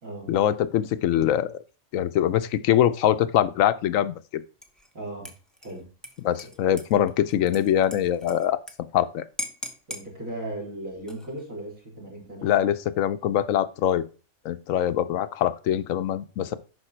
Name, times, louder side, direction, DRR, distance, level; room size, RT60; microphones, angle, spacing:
voice 1, 0.3-1.6 1.9-4.1 6.2-8.6 8.9-9.2 12.4-14.0 14.4-16.6, left 11 dB, 80° left, 1.0 m, -23 dB
Dishes pots and pans / Liquid, 4.6-4.9 5.2-8.7 9.0-9.1 9.4-10.1 10.9-11.4, left 1 dB, ahead, 1.0 m, -39 dB
voice 2, 4.9-5.3 5.6-5.9 6.4-6.5 9.9-12.5, right 1 dB, 85° right, 4.3 m, -37 dB
11.0 x 4.7 x 4.4 m
omnidirectional pair, 1.4 m